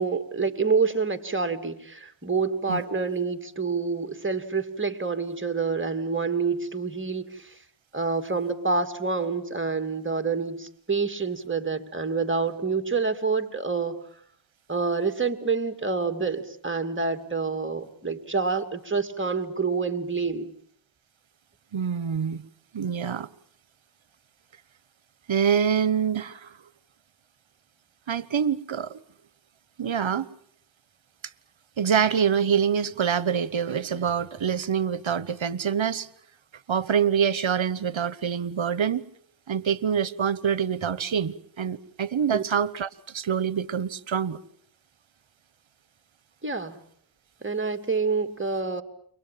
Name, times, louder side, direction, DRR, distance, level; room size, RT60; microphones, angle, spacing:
voice 1, 0.0-7.6 7.9-14.0 14.7-20.5 42.3-42.4 46.4-46.8 47.4-48.8, right 4 dB, 25° right, 2.6 m, -27 dB
voice 2, 21.7-22.4 22.7-23.3 25.3-26.5 28.1-29.0 29.8-30.3 31.8-36.1 36.7-39.0 39.5-44.4, right 7 dB, 65° right, 1.2 m, -25 dB
29.0 x 23.5 x 7.6 m
cardioid pair, 45°, 50 cm